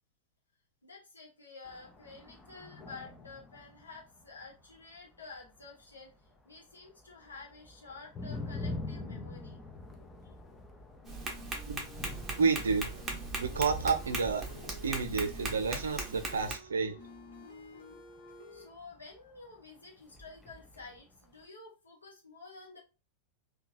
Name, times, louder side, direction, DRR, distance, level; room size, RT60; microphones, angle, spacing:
voice 1, 0.8-9.6 10.2-10.3 18.3-22.8, left 4 dB, 80° left, 0.9 m, -51 dB
sound 1, 1.7-6.6 6.9-19.6 20.0-21.4, left 2 dB, 15° left, 0.5 m, -46 dB
sound 2, 11.0-18.7, left 2 dB, 60° left, 1.1 m, -52 dB
Tap, 11.0-16.5, right 3 dB, 20° right, 0.8 m, -39 dB
voice 2, 12.4-12.9 13.4-14.4 14.8-17.0, right 5 dB, 70° right, 0.4 m, -30 dB
2.8 x 2.2 x 2.5 m
figure-of-eight pair, 90°, 0 cm